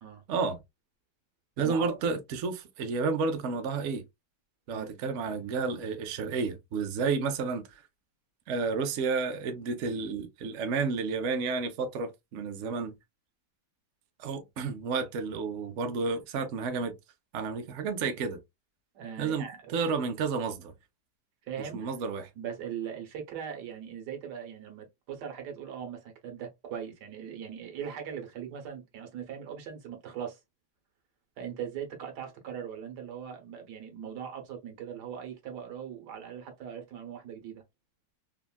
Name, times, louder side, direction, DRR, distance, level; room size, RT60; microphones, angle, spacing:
voice 1, 0.3-0.6 1.6-4.0 4.7-7.8 8.5-12.9 14.2-16.9 17.3-18.4 19.2-20.7 21.7-22.2, right 4 dB, 65° right, 0.8 m, -31 dB
voice 2, 1.6-2.0 4.7-4.9 14.6-14.7 18.9-19.8 21.5-21.9 22.3-30.4 31.4-37.6, right 8 dB, 80° right, 1.5 m, -40 dB
3.5 x 2.2 x 2.2 m
omnidirectional pair, 1.8 m